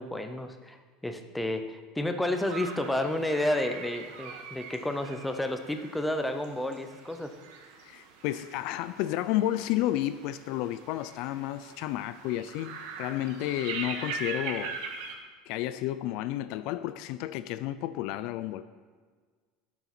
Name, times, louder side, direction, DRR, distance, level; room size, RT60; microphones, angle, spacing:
voice 1, 0.0-7.3, left 1 dB, 5° left, 6 dB, 0.6 m, -31 dB
sound 1, 2.3-15.1, right 5 dB, 70° right, 1.5 m, -42 dB
voice 2, 7.8-14.8 15.5-18.6, left 14 dB, 50° left, 13 dB, 0.3 m, -31 dB
9.9 x 7.9 x 5.9 m, 1.5 s
cardioid pair, 180°, 0 cm